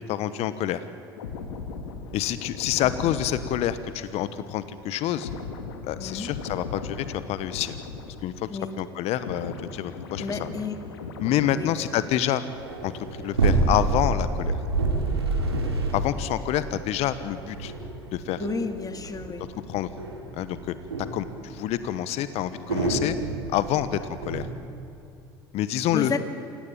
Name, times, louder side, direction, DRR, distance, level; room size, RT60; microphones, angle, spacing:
voice 1, 0.1-0.8 2.1-5.3 5.9-7.8 8.2-8.5 8.8-10.5 11.2-12.4 12.8-14.6 15.9-17.7 18.1-18.5 19.7-19.9 20.3-20.7 21.1-23.2 23.5-24.0 24.2-24.5 25.5-26.2, left 12 dB, 55° left, 14 dB, 1.2 m, -27 dB
sound 1, 1.2-8.7 8.9-12.6 12.9-13.2, left 4 dB, 75° left, 2.2 m, -38 dB
voice 2, 6.0-6.3 8.5-8.7 10.2-10.8 11.5-11.7 18.4-19.5 25.9-26.2, left 5 dB, 30° left, 9 dB, 2.3 m, -31 dB
sound 2, 12.5-24.5, right 3 dB, 90° right, 3.4 m, -29 dB
28.0 x 18.0 x 8.9 m, 2.8 s
figure-of-eight pair, 65°, 13 cm